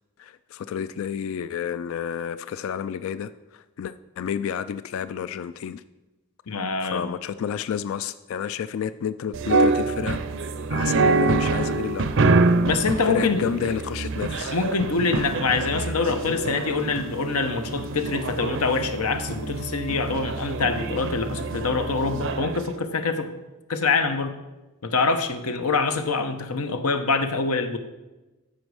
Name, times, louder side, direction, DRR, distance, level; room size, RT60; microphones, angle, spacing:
voice 1, 0.2-5.8 6.8-10.2 10.7-12.4 13.0-14.5, left 8 dB, 65° left, 13 dB, 0.3 m, -30 dB
voice 2, 6.5-7.1 12.6-13.4 14.5-23.3 23.7-24.3 24.8-27.8, left 4 dB, 85° left, 8 dB, 0.9 m, -25 dB
sound 1, 9.3-22.6, right 3 dB, 60° right, 0.5 m, -26 dB
13.0 x 5.2 x 4.8 m, 1.1 s
head